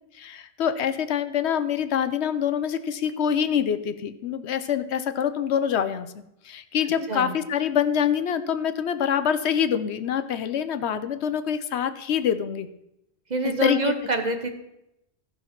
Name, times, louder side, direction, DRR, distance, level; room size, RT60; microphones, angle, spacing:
voice 1, 0.2-6.1 6.4-12.7 13.6-13.9, left 8 dB, 80° left, 11 dB, 1.0 m, -25 dB
voice 2, 13.3-14.5, right 2 dB, 40° right, 7 dB, 1.2 m, -26 dB
15.0 x 5.7 x 5.9 m, 0.85 s
omnidirectional pair, 1.1 m